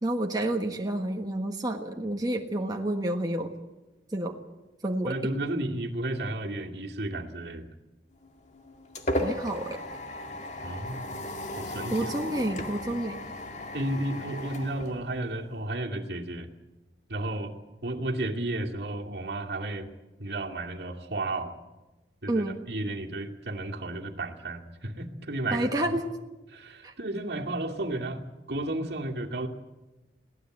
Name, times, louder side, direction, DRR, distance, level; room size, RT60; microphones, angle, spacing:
voice 1, 0.0-3.5 4.1-4.4 4.8-5.2 9.2-9.8 11.9-13.2 22.3-22.6 25.5-26.1 26.8-26.9, right 1 dB, 20° right, 2 dB, 1.4 m, -29 dB
voice 2, 5.0-7.7 10.6-11.0 11.6-11.9 13.7-16.5 17.1-17.5 17.8-19.9 20.2-21.6 22.2-26.0 26.5-28.2 28.5-29.5, right 1 dB, 65° right, 2 dB, 2.3 m, -33 dB
sound 1, 8.2-15.6, left 1 dB, 40° left, 2.1 m, -36 dB
22.5 x 18.0 x 7.8 m, 1.1 s
head